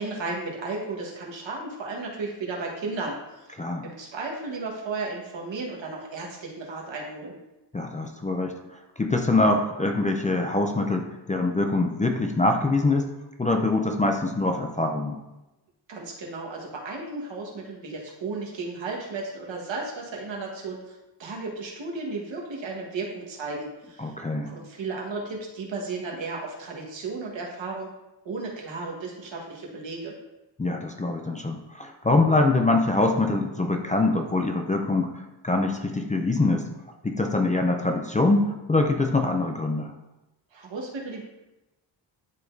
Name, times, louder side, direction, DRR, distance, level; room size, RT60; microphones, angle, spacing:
voice 1, 0.0-3.5 3.8-7.4 15.9-24.1 24.5-27.9 28.2-30.1 40.5-41.2, right 3 dB, 85° right, -2 dB, 1.5 m, -34 dB
voice 2, 7.7-8.5 9.0-13.1 13.4-15.2 24.0-24.5 30.6-35.1 35.4-36.6 37.0-39.9, left 2 dB, 20° left, 3 dB, 0.4 m, -24 dB
10.5 x 4.0 x 2.6 m, 0.99 s
wide cardioid pair, 165°, 44 cm